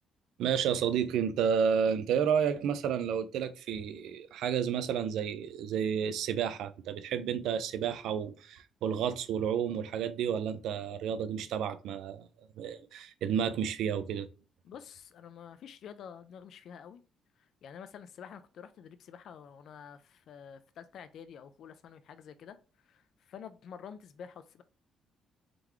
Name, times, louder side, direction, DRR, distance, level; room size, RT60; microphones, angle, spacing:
voice 1, 0.4-12.3 12.6-14.3, right 8 dB, 85° right, 0.4 m, -31 dB
voice 2, 14.6-17.0 17.4-22.6 22.8-24.6, left 7 dB, 65° left, 0.3 m, -49 dB
3.8 x 3.4 x 3.0 m
cardioid pair, 125°, 0 cm